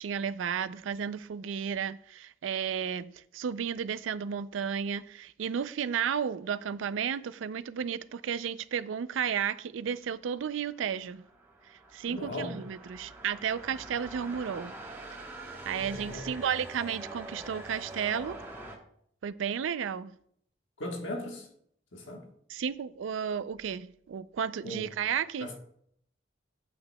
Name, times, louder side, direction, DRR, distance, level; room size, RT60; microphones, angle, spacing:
voice 1, 0.0-11.2 11.7-14.7 15.7-18.4 19.2-20.1 22.5-25.5, right 7 dB, 85° right, 0.4 m, -33 dB
sound 1, 10.9-18.8, right 2 dB, 10° right, 1.0 m, -45 dB
voice 2, 12.1-12.6 15.8-16.3 20.8-21.5 21.9-22.3 24.6-24.9 25.4-25.6, left 1 dB, 85° left, 1.3 m, -38 dB
8.8 x 8.6 x 2.2 m
head